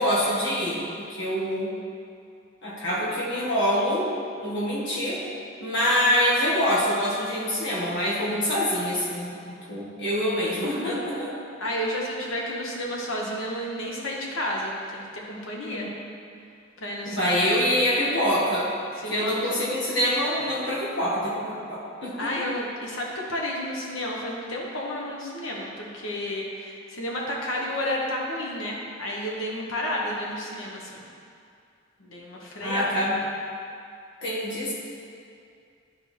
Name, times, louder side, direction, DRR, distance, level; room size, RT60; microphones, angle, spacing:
voice 1, 0.0-1.7 2.6-5.2 5.6-11.3 15.6-15.9 17.1-18.7 19.0-22.3 32.6-33.2 34.2-34.7, equal, 65° left, -7 dB, 1.6 m, -25 dB
voice 2, 11.6-15.9 16.8-17.4 19.0-19.3 22.2-31.0 32.0-32.9, left 1 dB, 90° left, -2 dB, 1.3 m, -31 dB
11.0 x 4.7 x 3.4 m, 2.4 s
head